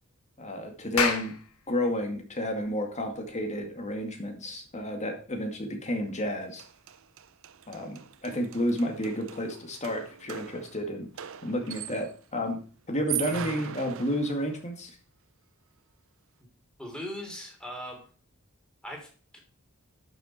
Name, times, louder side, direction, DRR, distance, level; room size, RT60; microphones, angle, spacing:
voice 1, 0.4-1.3 1.7-6.6 7.7-11.1 11.4-12.6 12.9-14.9, equal, 35° left, 3 dB, 2.2 m, -31 dB
Clapping, 0.7-5.6, left 5 dB, 80° left, 1.5 m, -34 dB
sound 1, 6.3-6.4 6.6-12.2 12.9-14.7, right 10 dB, 65° right, 0.7 m, -40 dB
voice 2, 16.8-18.1 18.8-19.4, equal, 5° left, 1 dB, 3.3 m, -39 dB
11.5 x 6.7 x 4.4 m, 0.40 s
head